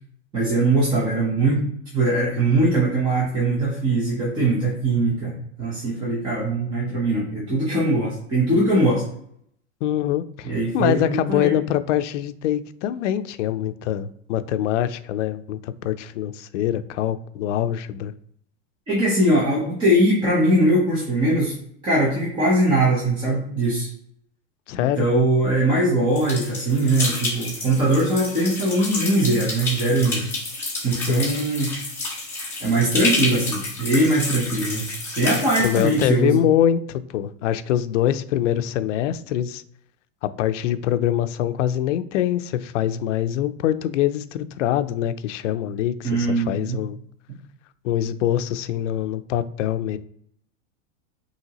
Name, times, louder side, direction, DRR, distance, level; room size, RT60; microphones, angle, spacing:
voice 1, 0.3-1.6 1.9-5.3 5.6-9.0 10.4-11.5 18.9-21.5 21.8-23.9 24.8-30.3 30.8-31.7 32.6-34.9 35.2-36.4 46.0-46.8, right 1 dB, 10° right, -6 dB, 0.7 m, -21 dB
voice 2, 9.8-18.1 24.7-25.1 31.1-31.2 35.6-39.6 40.2-47.0 47.8-50.0, left 11 dB, 75° left, 12 dB, 0.5 m, -24 dB
sound 1, 26.2-36.1, left 2 dB, 5° left, 1.1 m, -29 dB
5.7 x 2.7 x 2.9 m, 0.68 s
supercardioid pair, 175°, 38 cm